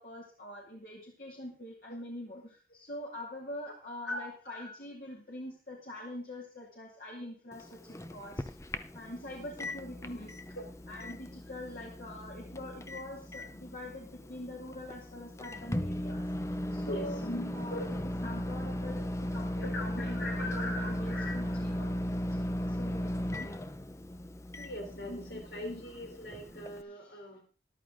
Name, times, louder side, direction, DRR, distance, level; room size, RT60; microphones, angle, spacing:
voice 1, 0.0-8.5 8.9-10.4 10.9-16.3 16.7-17.8 18.2-23.5 25.1-25.8, left 1 dB, 55° left, -2 dB, 2.6 m, -44 dB
Microwave oven, 7.5-26.8, left 1 dB, 15° left, 0.7 m, -37 dB
voice 2, 16.9-17.3 17.7-18.0 19.6-21.6 24.6-27.4, left 1 dB, 80° left, 2 dB, 3.6 m, -41 dB
13.5 x 12.0 x 3.8 m, 0.37 s
head